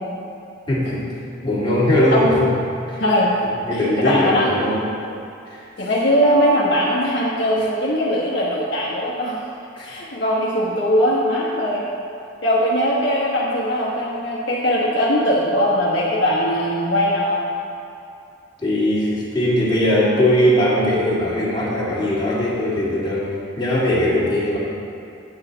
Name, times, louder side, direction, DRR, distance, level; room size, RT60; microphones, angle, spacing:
voice 1, 0.7-1.1 1.4-2.5 2.9-3.0 3.7-4.9 5.5-5.9 9.7-9.9 18.6-23.3 23.6-24.6, left 1 dB, 25° left, -8 dB, 2.0 m, -20 dB
voice 2, 3.0-3.3 3.7-4.5 5.8-9.4 9.8-11.8 12.4-17.4, equal, 60° left, -6 dB, 1.1 m, -20 dB
8.8 x 8.2 x 3.9 m, 2.7 s
head